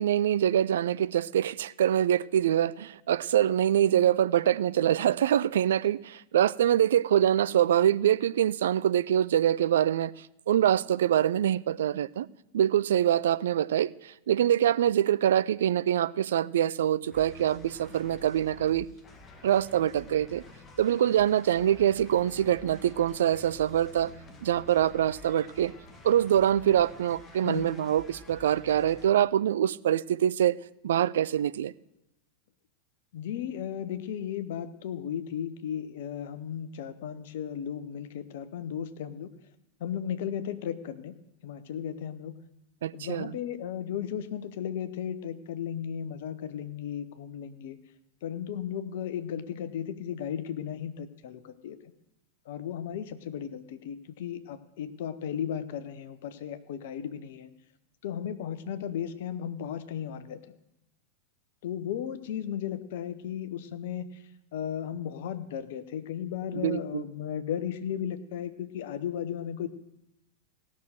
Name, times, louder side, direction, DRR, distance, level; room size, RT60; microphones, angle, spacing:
voice 1, 0.0-10.1 10.5-12.3 12.5-18.9 19.4-20.4 20.8-24.1 24.4-25.7 26.0-30.6 30.8-31.7 42.8-43.3 66.5-67.0, right 10 dB, 60° right, 0.3 m, -24 dB
sound 1, 17.1-29.1, left 2 dB, 20° left, 1.4 m, -50 dB
voice 2, 33.1-39.3 39.8-41.1 41.4-42.4 42.9-47.8 48.2-51.8 52.5-57.5 58.0-60.4 61.6-64.2 64.5-69.7, left 9 dB, 55° left, 0.8 m, -35 dB
16.5 x 6.2 x 6.6 m
figure-of-eight pair, 90°, 0 cm